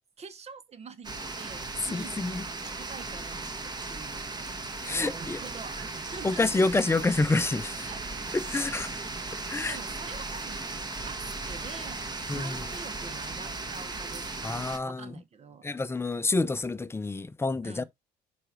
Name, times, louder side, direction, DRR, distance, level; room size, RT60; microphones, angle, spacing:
voice 1, 0.2-4.2 4.8-6.7 7.8-8.0 9.6-15.7 17.6-17.8, right 5 dB, 40° right, 0.8 m, -46 dB
sound 1, 1.0-14.8, right 3 dB, 25° right, 1.4 m, -37 dB
voice 2, 1.9-2.4 4.8-5.4 6.2-7.9 8.3-8.9 9.5-9.8 12.3-12.6 14.4-15.1 15.6-17.8, left 3 dB, 15° left, 0.6 m, -28 dB
9.6 x 5.1 x 3.2 m
cardioid pair, 110°, 17 cm